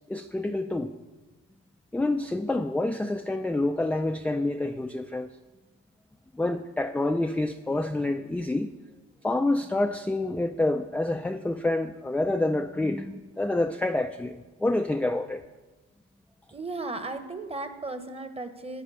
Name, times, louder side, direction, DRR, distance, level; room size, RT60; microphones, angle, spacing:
voice 1, 0.1-0.9 1.9-5.3 6.4-8.7 9.2-15.4, left 2 dB, 5° left, 6 dB, 0.4 m, -27 dB
voice 2, 16.5-18.8, right 3 dB, 20° right, 9 dB, 1.0 m, -35 dB
10.5 x 8.9 x 5.5 m, 1.2 s
cardioid pair, 90°, 30 cm